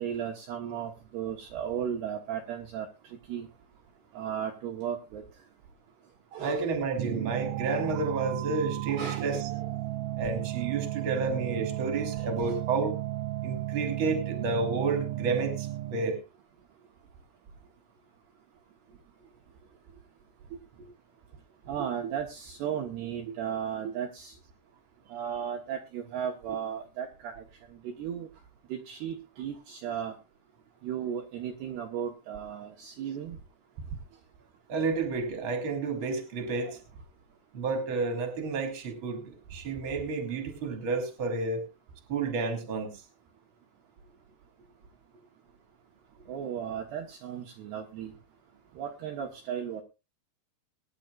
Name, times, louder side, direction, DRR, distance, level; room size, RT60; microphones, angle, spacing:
voice 1, 0.0-2.9 3.3-3.5 4.1-5.2 6.3-6.7 9.0-9.6 21.7-24.3 25.1-27.4 27.8-28.3 28.7-30.1 30.8-33.4 36.6-36.7 46.3-48.1 48.8-49.8, right 8 dB, 65° right, 1 dB, 3.0 m, -35 dB
voice 2, 6.4-9.5 10.2-13.0 13.4-16.2 34.7-36.8 37.5-41.6 42.1-43.0, right 4 dB, 30° right, 5 dB, 3.0 m, -31 dB
sound 1, 7.0-16.2, right 16 dB, 85° right, 3.3 m, -34 dB
22.0 x 11.0 x 2.5 m, 0.28 s
omnidirectional pair, 5.6 m